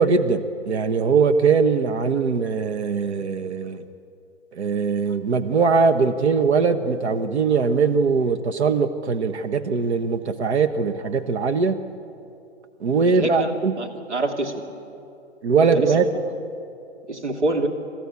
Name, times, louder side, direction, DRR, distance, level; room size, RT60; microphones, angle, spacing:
voice 1, 0.0-3.8 4.5-11.8 12.8-13.7 15.4-16.1, right 5 dB, 70° right, 9 dB, 1.2 m, -21 dB
voice 2, 13.0-13.5 13.8-14.6 15.6-16.2 17.1-17.7, right 2 dB, 90° right, 3 dB, 2.8 m, -26 dB
27.0 x 14.0 x 8.3 m, 2.7 s
hypercardioid pair, 130°, 34 cm